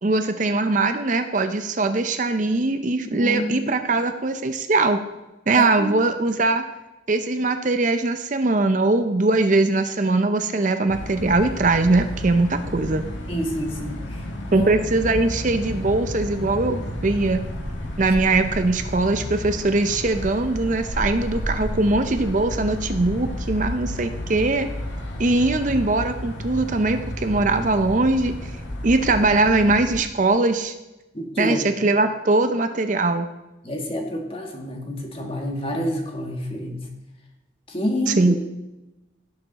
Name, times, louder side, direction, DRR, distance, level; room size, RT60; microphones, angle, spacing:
voice 1, 0.0-5.0 5.5-6.6 7.1-13.0 14.5-17.4 18.0-24.7 25.2-28.5 28.8-30.7 31.4-33.3 38.1-38.3, right 2 dB, 40° right, 8 dB, 0.6 m, -21 dB
voice 2, 3.1-3.5 5.6-5.9 13.3-14.0 14.5-14.7 31.1-31.7 33.6-36.8 37.7-38.2, equal, 30° left, 1 dB, 1.7 m, -28 dB
sound 1, 10.9-30.0, left 1 dB, 80° left, 2.0 m, -32 dB
17.0 x 6.9 x 4.1 m, 0.99 s
head